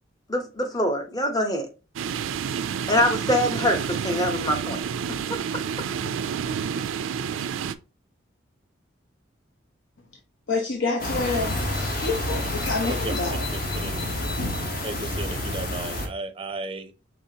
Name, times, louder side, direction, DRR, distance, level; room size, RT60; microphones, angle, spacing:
voice 1, 0.3-1.7 2.9-4.8 5.1-5.4, left 1 dB, 20° left, 0.7 m, -24 dB
sound 1, 2.0-7.8, right 7 dB, 85° right, 0.3 m, -29 dB
voice 2, 10.5-11.6 12.0-13.5, left 3 dB, 75° left, 0.7 m, -27 dB
sound 2, 11.0-16.1, left 1 dB, 45° left, 1.0 m, -28 dB
voice 3, 12.8-13.1 13.5-13.9 14.8-16.9, right 2 dB, 25° right, 0.5 m, -35 dB
5.5 x 3.2 x 2.8 m
head